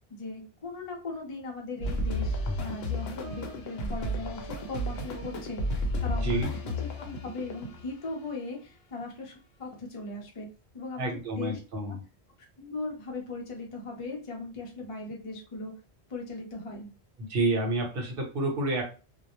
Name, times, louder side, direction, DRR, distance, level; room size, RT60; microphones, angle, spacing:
voice 1, 0.1-10.5 10.7-11.6 11.8-12.0 12.6-15.7 16.1-16.9, left 3 dB, 40° left, -1 dB, 0.6 m, -39 dB
sound 1, 1.8-7.9, left 1 dB, 70° left, 0.8 m, -32 dB
voice 2, 11.0-12.0 17.3-18.8, right 2 dB, 60° right, 1 dB, 1.0 m, -29 dB
2.2 x 2.0 x 2.9 m, 0.33 s
omnidirectional pair, 1.1 m